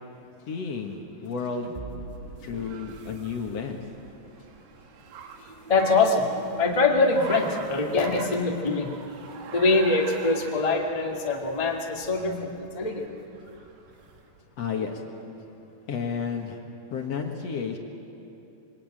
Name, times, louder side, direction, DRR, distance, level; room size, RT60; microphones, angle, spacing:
voice 1, 0.5-1.7 2.4-3.8 14.6-15.0 15.9-16.6 16.9-17.8, left 6 dB, 55° left, 2 dB, 1.9 m, -31 dB
sound 1, 1.2-11.8, right 3 dB, 45° right, 0.6 m, -46 dB
Car, 1.9-14.4, right 6 dB, 70° right, 3.4 m, -44 dB
voice 2, 5.7-6.3 6.5-8.9 9.5-13.0 13.5-13.6, left 3 dB, 80° left, 0 dB, 0.3 m, -23 dB
26.5 x 23.5 x 9.1 m, 2.8 s
omnidirectional pair, 4.9 m